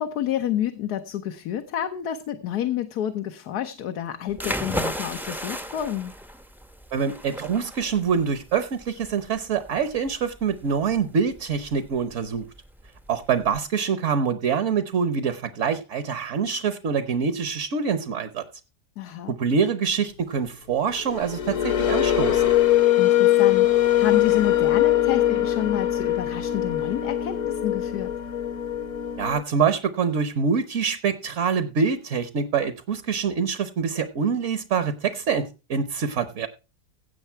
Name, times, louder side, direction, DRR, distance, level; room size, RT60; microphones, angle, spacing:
voice 1, 0.0-6.2 19.0-19.3 23.0-28.1, left 11 dB, 80° left, 1.4 m, -29 dB
sound 1, 4.3-13.6, equal, ahead, 0.5 m, -36 dB
voice 2, 6.9-12.5 13.1-18.4 19.3-22.5 29.2-36.5, right 6 dB, 55° right, 1.1 m, -25 dB
sound 2, 21.0-29.4, left 12 dB, 55° left, 1.3 m, -22 dB
16.5 x 6.6 x 4.5 m
omnidirectional pair, 1.7 m